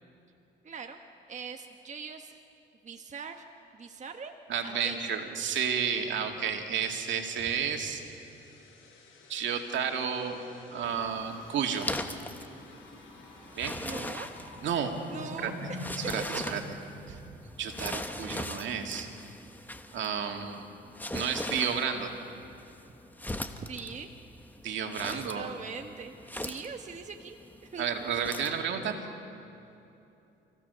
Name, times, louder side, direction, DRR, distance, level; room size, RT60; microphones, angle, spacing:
voice 1, 0.6-1.0 1.3-2.4 2.8-3.5 3.7-4.3 4.6-5.0 13.8-14.3 15.1-15.9 16.5-16.6 23.6-24.1 25.0-27.4 27.7-27.9, right 5 dB, 35° right, 4 dB, 1.2 m, -42 dB
voice 2, 4.5-8.0 9.3-10.4 10.7-12.1 13.5-13.8 14.6-15.0 15.4-15.7 16.0-16.6 17.1-19.1 19.9-20.7 21.1-22.1 24.6-25.5 27.8-29.1, right 7 dB, 70° right, 3 dB, 2.3 m, -32 dB
sound 1, 6.8-17.5, left 2 dB, 85° left, 5.3 m, -47 dB
sound 2, 10.8-28.6, left 1 dB, 10° left, 1.2 m, -41 dB
29.0 x 16.0 x 6.9 m, 2.8 s
cardioid pair, 90°, 20 cm